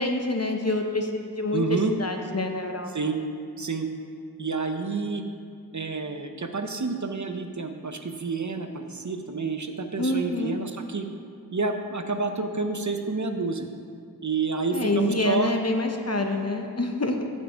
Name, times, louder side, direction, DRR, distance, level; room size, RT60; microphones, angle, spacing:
voice 1, 0.0-2.9 10.0-10.6 14.7-17.2, left 2 dB, 40° left, 4 dB, 0.9 m, -27 dB
voice 2, 1.5-1.9 2.9-3.2 3.6-3.9 4.4-5.2 5.7-11.1 11.5-13.7 14.2-15.5, right 4 dB, 50° right, 6 dB, 0.7 m, -29 dB
8.2 x 7.3 x 5.0 m, 2.3 s
wide cardioid pair, 45°, 39 cm